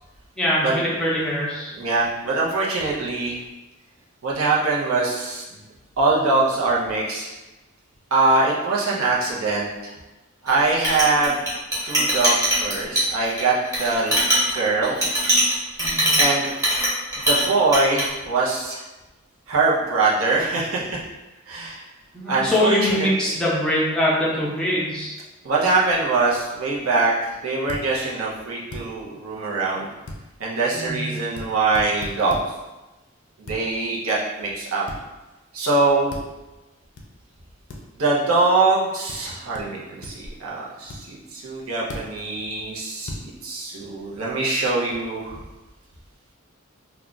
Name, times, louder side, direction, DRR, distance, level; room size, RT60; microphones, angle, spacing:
voice 1, 0.4-1.7 15.8-16.1 22.1-25.1 30.7-31.0, left 1 dB, 5° left, -7 dB, 0.6 m, -23 dB
voice 2, 1.7-3.4 4.2-5.4 6.0-7.3 8.1-9.9 10.4-11.4 11.9-14.2 14.5-15.0 16.2-16.5 17.2-18.8 19.5-21.0 21.5-21.8 22.3-23.3 25.4-29.9 30.4-32.4 33.4-34.8 35.5-36.1 38.0-45.4, right 3 dB, 80° right, -5 dB, 0.7 m, -23 dB
Chink clink, 10.5-17.5 17.7-18.1, right 1 dB, 15° right, 0.9 m, -21 dB
sound 1, 27.7-27.9 28.7-28.9 30.1-30.2 31.4-31.5 31.7-32.5 33.5-33.6 34.9-35.0 36.1-36.3 37.0-37.1 37.7-37.8 39.1-39.2 39.5-39.7 40.0-40.3 40.9-41.0 41.9-42.1 43.1-43.2, left 1 dB, 60° left, 0.4 m, -35 dB
2.3 x 2.3 x 3.8 m, 1.1 s
head